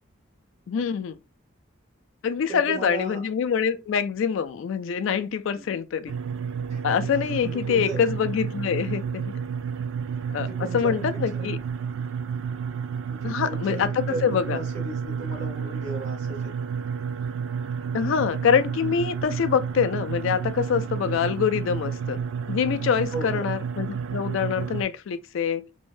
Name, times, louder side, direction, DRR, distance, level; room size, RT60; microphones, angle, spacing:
voice 1, 0.7-1.1 2.2-6.1 6.8-9.3 10.3-11.6 13.2-14.6 17.9-22.2 22.5-25.7, left 7 dB, 70° left, 0.3 m, -25 dB
voice 2, 2.5-3.3 5.6-5.8 6.7-6.8 7.4-8.0 10.4-11.5 13.1-16.5 21.0-21.1 23.1-23.5, right 2 dB, 35° right, 0.9 m, -36 dB
sound 1, 6.1-24.8, right 6 dB, 70° right, 0.3 m, -31 dB
2.6 x 2.1 x 3.0 m
head